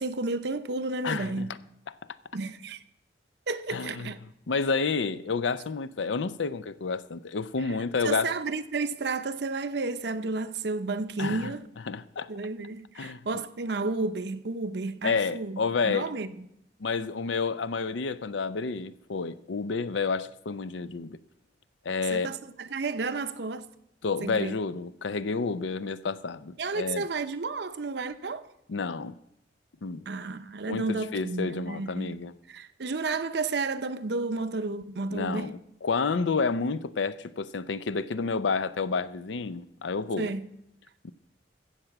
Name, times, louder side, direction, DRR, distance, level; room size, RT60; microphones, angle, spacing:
voice 1, 0.0-1.5 2.3-2.8 3.5-4.2 8.0-11.7 12.3-16.3 22.1-23.7 24.2-24.5 26.6-28.5 30.1-32.2 32.5-35.5 40.2-40.5, right 3 dB, 60° right, 0.7 m, -32 dB
voice 2, 1.0-1.5 3.7-4.1 4.5-8.3 11.2-11.5 11.9-12.3 13.0-13.4 15.0-16.1 16.8-21.2 21.8-22.3 24.0-27.1 28.7-29.2 29.8-30.0 30.6-32.3 35.1-40.3 41.0-41.1, left 4 dB, 80° left, 0.6 m, -30 dB
14.5 x 7.6 x 5.9 m
head